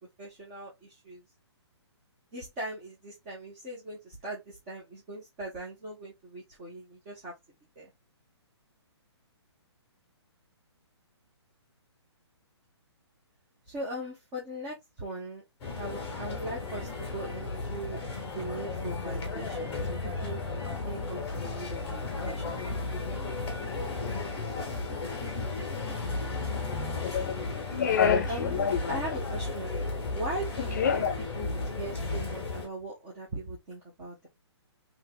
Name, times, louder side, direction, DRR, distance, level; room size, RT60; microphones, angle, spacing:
voice 1, 0.2-1.2 2.3-7.3 7.8-7.9 13.7-15.4 15.7-18.0 18.3-20.4 20.8-22.6 28.3-29.7 30.1-34.3, right 1 dB, 10° right, 0.3 m, -40 dB
sound 1, 15.6-32.7, left 3 dB, 10° left, 1.0 m, -34 dB
voice 2, 27.0-27.4 27.7-29.0 30.7-31.1, left 7 dB, 40° left, 0.5 m, -27 dB
3.3 x 2.8 x 2.3 m
hypercardioid pair, 170°, 15 cm